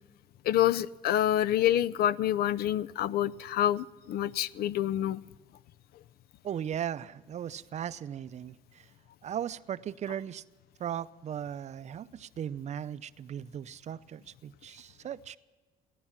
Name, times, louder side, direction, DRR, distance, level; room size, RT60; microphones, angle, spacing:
voice 1, 0.5-5.2, left 12 dB, 65° left, 0.5 m, -27 dB
voice 2, 6.4-8.5 9.2-10.4 10.8-15.4, right 9 dB, 40° right, 0.5 m, -37 dB
17.0 x 11.0 x 7.2 m
cardioid pair, 110°, 17 cm